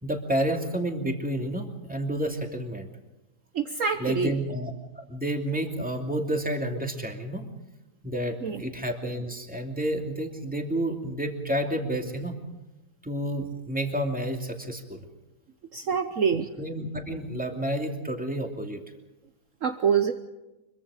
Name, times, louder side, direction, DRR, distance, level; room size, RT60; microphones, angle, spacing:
voice 1, 0.0-2.9 4.0-7.5 8.0-12.4 13.0-15.0 16.6-18.8, right 1 dB, 5° right, 3 dB, 2.6 m, -30 dB
voice 2, 3.5-4.3 8.4-8.6 15.7-16.5 19.6-20.1, right 6 dB, 55° right, 7 dB, 1.3 m, -25 dB
25.0 x 23.0 x 5.0 m, 1.0 s
omnidirectional pair, 1.7 m